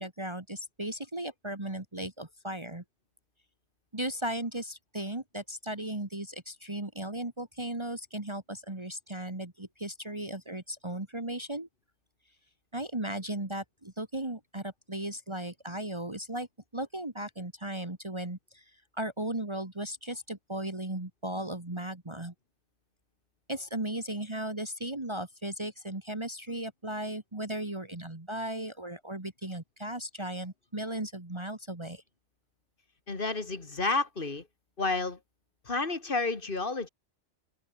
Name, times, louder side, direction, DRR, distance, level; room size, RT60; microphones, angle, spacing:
voice 1, 0.0-2.8 3.9-11.7 12.7-16.5 16.7-18.6 19.0-22.3 23.5-32.0, right 1 dB, 25° right, 2.2 m, -36 dB
voice 2, 33.1-34.4 34.8-35.2 35.7-36.9, left 3 dB, 50° left, 2.3 m, -30 dB
open air
omnidirectional pair, 1.2 m